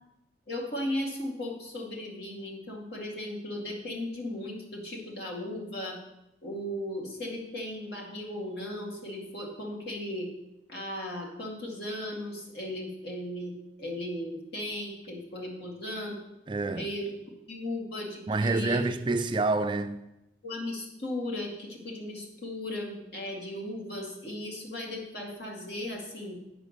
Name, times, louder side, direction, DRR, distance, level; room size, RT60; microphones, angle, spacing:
voice 1, 0.5-6.0 6.4-10.3 10.7-16.2 16.7-17.1 17.5-18.8 20.4-26.4, left 1 dB, 65° left, 2.2 m, -36 dB
voice 2, 16.5-16.9 18.3-20.1, right 3 dB, 25° right, 0.3 m, -27 dB
9.1 x 5.0 x 6.5 m
head